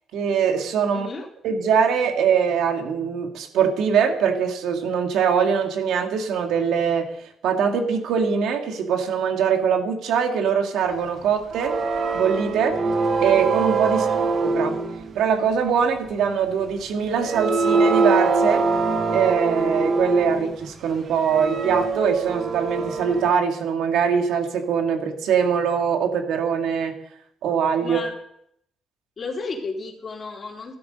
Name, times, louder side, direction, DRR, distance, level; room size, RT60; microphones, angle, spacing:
voice 1, 0.1-1.1 1.4-11.8 12.1-12.7 13.2-14.1 14.4-14.8 15.1-18.6 19.1-27.0 27.4-28.0, right 7 dB, 80° right, 4 dB, 2.3 m, -22 dB
voice 2, 0.9-1.3 13.9-14.2 27.8-28.1 29.2-30.8, left 4 dB, 40° left, 0 dB, 3.9 m, -33 dB
sound 1, 11.5-15.3 16.8-16.9 17.1-20.6 21.1-23.3, right 4 dB, 50° right, 1.2 m, -23 dB
14.0 x 12.5 x 5.3 m, 0.72 s
cardioid pair, 90°, 0 cm